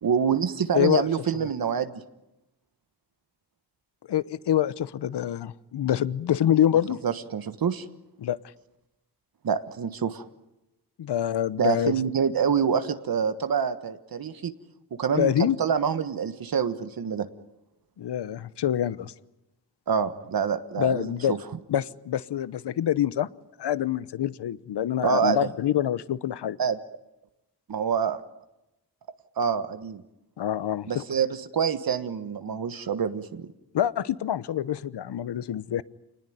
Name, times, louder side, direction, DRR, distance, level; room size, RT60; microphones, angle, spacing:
voice 1, 0.0-2.0 7.0-7.8 9.4-10.2 11.6-14.5 15.0-17.3 19.9-21.4 25.0-25.4 26.6-26.8 27.7-28.2 29.4-30.0 30.9-33.5, right 7 dB, 60° right, 10 dB, 1.4 m, -26 dB
voice 2, 0.7-1.1 1.3-1.5 4.1-7.0 8.2-8.4 11.0-12.0 15.2-15.6 18.0-19.1 20.8-21.4 21.7-23.3 23.6-26.6 30.4-31.0 33.7-35.8, left 11 dB, 90° left, 17 dB, 0.9 m, -26 dB
29.0 x 20.0 x 9.4 m, 0.94 s
wide cardioid pair, 160°, 40 cm